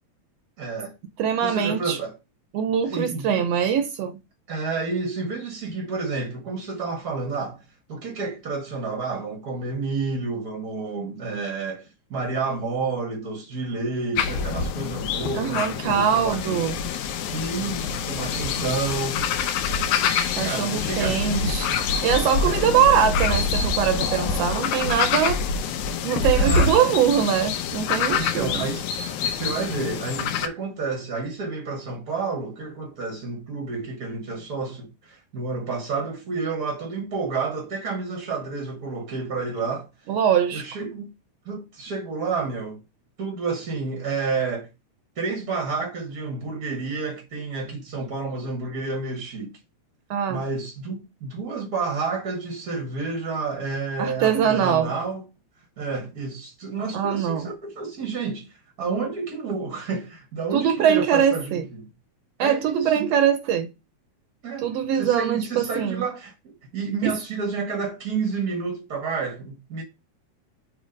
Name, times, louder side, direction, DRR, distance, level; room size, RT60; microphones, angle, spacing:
voice 1, 0.6-0.9 1.4-2.2 2.8-3.5 4.5-7.6 7.9-16.6 17.3-19.2 20.4-21.8 22.4-22.8 26.4-27.0 28.1-28.9 29.3-39.9 40.5-41.1 41.4-42.8 43.2-44.7 45.2-49.5 50.3-55.2 55.8-61.9 62.4-63.3 64.4-64.7 64.9-69.8, right 4 dB, 60° right, 0.9 m, -30 dB
voice 2, 1.2-2.0 2.5-4.2 15.3-16.8 20.3-21.7 22.0-25.4 26.0-28.7 40.1-40.6 50.1-50.4 54.0-54.9 56.9-57.5 60.5-61.6 62.4-63.7 64.6-66.0 67.0-67.1, right 8 dB, 75° right, 1.5 m, -22 dB
sound 1, 14.2-30.5, left 5 dB, 90° left, 2.1 m, -26 dB
6.5 x 3.1 x 5.0 m
omnidirectional pair, 3.3 m